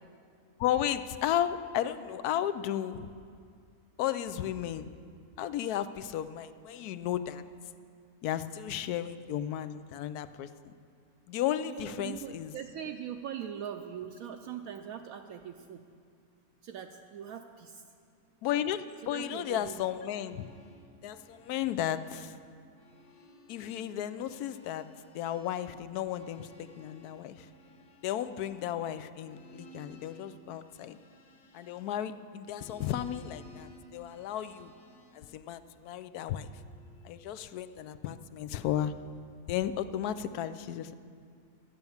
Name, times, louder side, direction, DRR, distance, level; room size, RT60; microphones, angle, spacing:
voice 1, 0.6-3.1 4.0-4.9 5.4-7.4 8.2-10.7 11.3-12.5 18.4-20.5 21.0-22.3 23.5-24.9 25.1-27.5 28.0-31.0 31.5-34.7 35.1-36.5 37.0-38.9 39.5-40.9, left 11 dB, 85° left, 13 dB, 1.1 m, -34 dB
voice 2, 11.6-15.8 16.6-17.8 19.0-19.8, right 9 dB, 75° right, 5 dB, 1.0 m, -41 dB
sound 1, 19.6-22.4 22.6-32.1 32.5-35.3 35.9-37.2, left 1 dB, 60° left, 2.0 m, -57 dB
13.0 x 9.1 x 7.1 m, 2.3 s
omnidirectional pair, 1.6 m